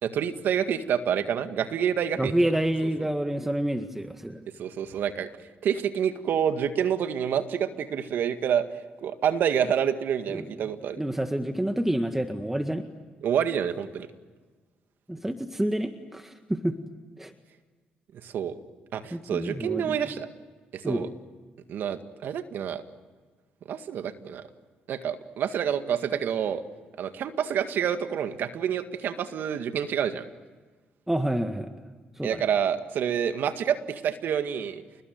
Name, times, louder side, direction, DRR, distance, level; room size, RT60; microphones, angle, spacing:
voice 1, 0.0-2.3 4.6-5.3 5.6-8.7 9.0-11.0 13.2-14.1 18.2-18.6 18.9-20.3 20.7-21.1 21.7-22.8 23.7-24.4 24.9-26.6 27.0-30.3 32.2-34.8, right 8 dB, 70° right, 9 dB, 1.9 m, -28 dB
voice 2, 2.2-4.5 10.3-10.5 11.0-12.9 15.1-16.8 17.2-17.3 19.1-20.0 20.8-21.1 31.1-31.7 32.2-32.5, right 1 dB, 10° right, 7 dB, 1.8 m, -28 dB
29.0 x 20.5 x 9.4 m, 1.4 s
supercardioid pair, 65°, 4 cm